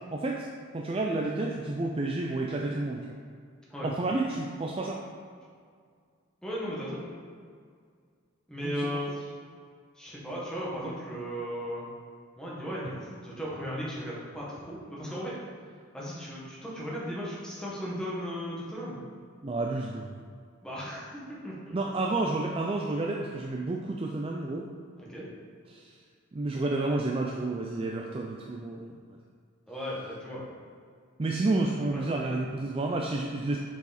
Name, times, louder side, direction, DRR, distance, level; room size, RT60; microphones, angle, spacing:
voice 1, 0.1-0.5 0.7-3.1 3.8-5.0 8.6-8.9 19.4-20.2 21.7-24.7 25.7-26.0 26.3-29.2 31.2-33.6, right 2 dB, 25° right, 0 dB, 0.3 m, -30 dB
voice 2, 6.4-7.1 8.5-9.3 10.0-11.9 12.4-15.4 15.9-19.0 20.6-21.1 21.4-21.9 25.0-25.3 29.7-30.5 31.9-32.0, equal, 5° left, -7 dB, 1.4 m, -36 dB
6.7 x 4.8 x 4.1 m, 2.1 s
head